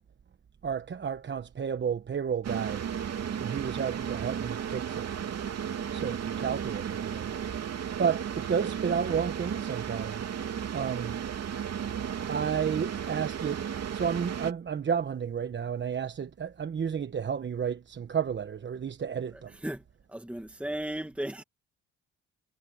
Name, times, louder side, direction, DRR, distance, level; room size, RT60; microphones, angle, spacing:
voice 1, 0.6-2.8 3.4-5.1 5.9-7.4 8.0-10.2 10.7-11.2 12.3-13.6 13.9-19.6, right 7 dB, 40° right, 1.1 m, -31 dB
sound 1, 2.4-14.5, right 8 dB, 55° right, 3.1 m, -34 dB
voice 2, 19.3-19.8 20.1-21.4, right 1 dB, 5° right, 2.2 m, -36 dB
cardioid pair, 90°, 30 cm